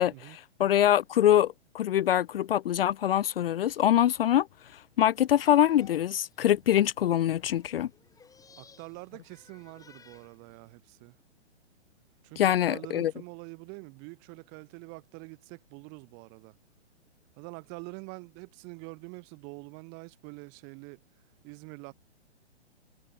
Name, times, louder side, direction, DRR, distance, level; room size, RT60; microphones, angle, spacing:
voice 1, 0.0-4.5 4.7-7.9 12.4-13.1, left 11 dB, 55° left, 0.7 m, -24 dB
sound 1, 5.4-10.8, left 5 dB, 10° left, 7.0 m, -58 dB
voice 2, 8.6-11.2 12.2-16.5 17.4-21.0 21.4-21.9, right 36 dB, 30° right, 6.0 m, -45 dB
hypercardioid pair, 135°, 34 cm